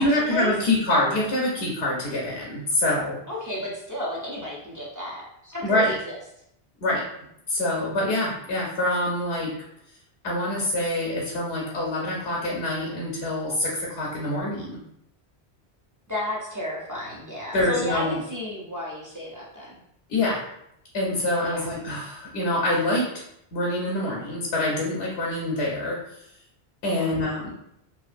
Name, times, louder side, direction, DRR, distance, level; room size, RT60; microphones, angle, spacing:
voice 1, 0.0-3.2 5.6-6.0 6.8-7.0 7.5-9.5 10.2-14.8 17.5-18.1 20.1-20.4 20.9-23.1 23.5-26.0 26.8-27.5, left 1 dB, 85° left, -3 dB, 0.9 m, -25 dB
voice 2, 3.3-6.2 16.1-19.8 21.4-21.7 26.8-27.1, left 1 dB, 30° right, -6 dB, 0.4 m, -32 dB
2.6 x 2.4 x 2.4 m, 0.76 s
omnidirectional pair, 1.1 m